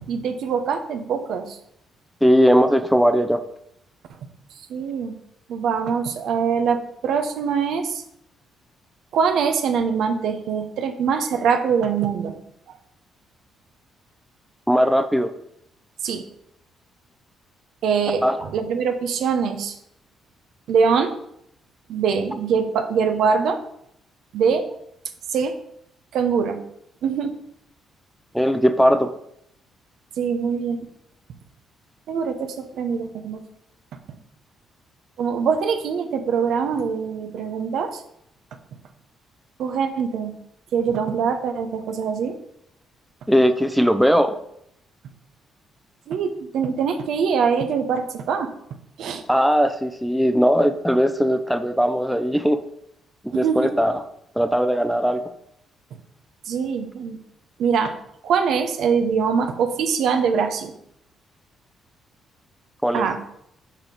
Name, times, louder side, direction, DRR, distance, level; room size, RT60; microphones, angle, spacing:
voice 1, 0.1-1.6 4.7-5.2 5.5-8.0 9.1-12.4 16.0-16.2 17.8-19.7 20.7-21.1 21.9-23.6 24.3-24.6 25.3-25.6 26.1-26.6 27.0-27.4 30.2-30.9 32.1-33.4 35.2-38.0 39.6-40.3 40.7-42.3 46.1-48.5 49.0-49.2 53.3-53.8 56.5-57.2 57.6-58.0 58.2-60.7 62.9-63.2, right 6 dB, 75° right, 6 dB, 0.8 m, -23 dB
voice 2, 2.2-3.4 14.7-15.3 18.2-18.4 28.3-29.1 43.3-44.3 49.3-52.6 53.4-53.9 54.4-55.2 62.8-63.1, equal, ahead, 8 dB, 0.5 m, -19 dB
5.8 x 4.6 x 5.2 m, 0.74 s
cardioid pair, 120°, 0 cm